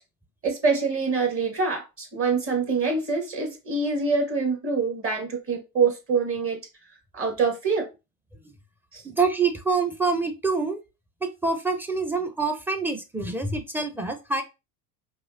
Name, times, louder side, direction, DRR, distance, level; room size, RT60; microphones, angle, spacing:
voice 1, 0.4-6.6 7.1-7.9 8.9-9.0, right 4 dB, 25° right, 1.9 m, -25 dB
voice 2, 9.0-10.8 11.4-14.4, right 4 dB, 5° right, 0.7 m, -26 dB
4.8 x 3.0 x 2.7 m
hypercardioid pair, 75°, 49 cm